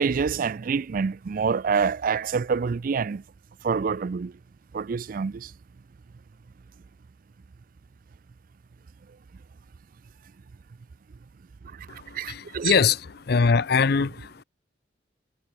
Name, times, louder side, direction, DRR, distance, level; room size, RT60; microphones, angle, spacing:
voice 1, 0.0-3.2 3.6-4.3 4.7-5.5 11.9-12.7, right 5 dB, 50° right, 0.4 m, -26 dB
voice 2, 12.3-13.0 13.3-14.4, left 5 dB, 60° left, 0.6 m, -22 dB
head